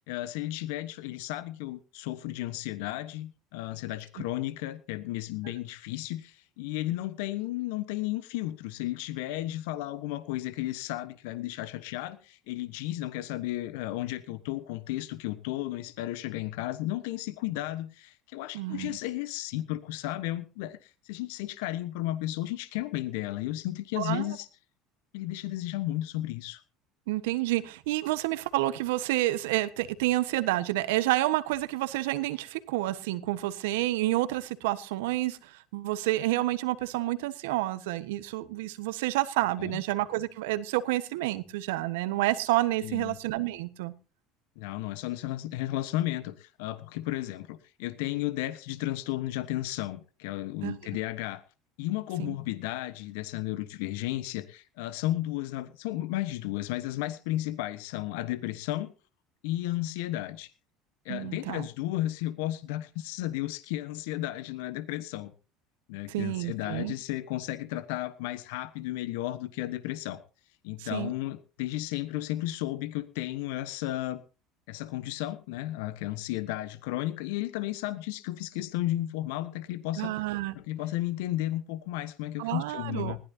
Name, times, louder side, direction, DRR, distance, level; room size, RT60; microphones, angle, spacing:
voice 1, 0.1-24.5 25.1-26.6 39.6-39.8 42.8-43.2 44.6-51.4 51.8-58.9 59.4-60.5 61.0-65.3 65.9-70.2 70.6-74.2 74.7-80.1 80.5-83.2, left 15 dB, 70° left, 13 dB, 1.2 m, -33 dB
voice 2, 18.5-19.0 24.0-24.3 27.1-43.9 50.6-50.8 52.2-52.3 61.1-61.7 66.1-66.9 70.8-71.1 80.0-80.5 82.4-83.2, right 17 dB, 75° right, 12 dB, 1.3 m, -29 dB
20.0 x 15.5 x 2.9 m, 0.35 s
hypercardioid pair, 70°, 0 cm